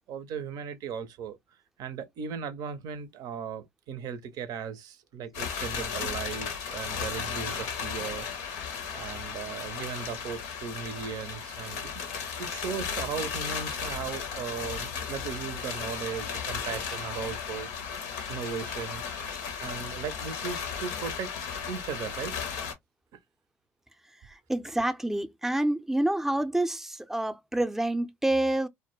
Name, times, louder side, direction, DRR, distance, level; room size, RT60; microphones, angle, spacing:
voice 1, 0.1-1.4 1.8-8.3 8.9-11.9 12.4-17.7 18.3-19.0 19.6-21.3 21.7-22.4, right 7 dB, 60° right, 0.5 m, -37 dB
sound 1, 5.3-22.7, left 7 dB, 75° left, 0.6 m, -35 dB
voice 2, 24.2-28.7, right 1 dB, 5° right, 0.5 m, -28 dB
2.2 x 2.1 x 3.0 m
hypercardioid pair, 65°, 7 cm